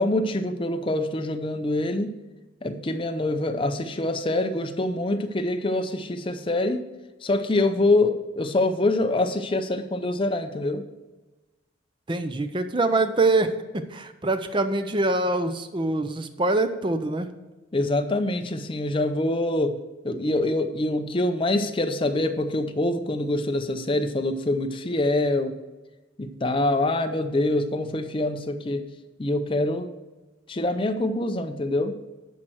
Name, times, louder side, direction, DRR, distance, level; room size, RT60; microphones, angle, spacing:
voice 1, 0.0-2.1 2.6-6.9 7.2-10.8 17.7-19.8 20.0-25.6 26.2-28.8 29.2-29.9 30.5-32.0, left 2 dB, 25° left, 8 dB, 0.5 m, -25 dB
voice 2, 12.1-17.3, right 2 dB, 25° right, 9 dB, 0.5 m, -24 dB
10.5 x 4.4 x 6.3 m, 1.1 s
head